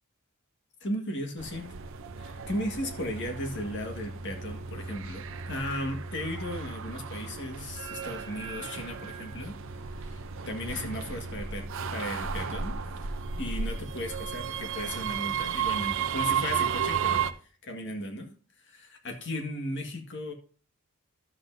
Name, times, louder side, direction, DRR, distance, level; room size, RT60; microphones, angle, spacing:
voice 1, 0.8-1.7 2.2-9.5 9.8-11.6 11.9-17.3 17.6-18.3 18.6-20.3, left 1 dB, 60° left, 4 dB, 1.8 m, -36 dB
sound 1, 1.4-17.3, right 7 dB, 65° right, 0.6 m, -34 dB
11.5 x 7.8 x 2.7 m, 0.41 s
head